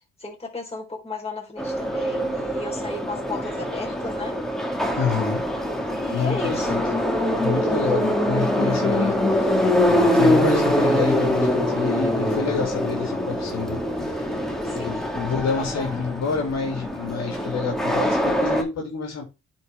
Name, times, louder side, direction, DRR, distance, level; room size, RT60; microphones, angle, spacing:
voice 1, 0.2-4.4 5.9-6.8 14.6-15.1 15.4-16.2, left 3 dB, 20° left, 4.3 m, -35 dB
Subway metro underground, 1.6-18.6, equal, ahead, 2.0 m, -24 dB
voice 2, 5.0-5.5 6.1-6.8 7.3-9.6 9.8-14.3 14.7-19.2, left 5 dB, 60° left, 3.0 m, -28 dB
10.5 x 4.6 x 3.6 m
cardioid pair, 90°, 30 cm